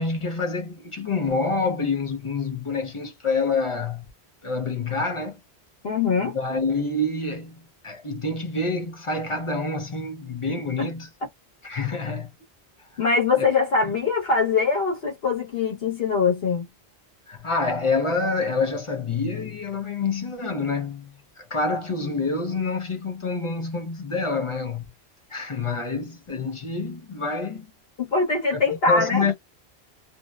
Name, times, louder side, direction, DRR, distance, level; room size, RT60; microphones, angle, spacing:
voice 1, 0.0-4.0 4.4-5.4 6.2-11.1 11.6-12.3 13.4-13.5 17.3-24.8 25.3-27.7 28.5-28.6 28.9-29.3, left 3 dB, 40° left, 0.5 m, -27 dB
voice 2, 5.8-6.4 10.8-10.9 13.0-16.7 28.0-29.3, left 4 dB, 65° left, 1.1 m, -22 dB
2.7 x 2.0 x 2.2 m
omnidirectional pair, 1.1 m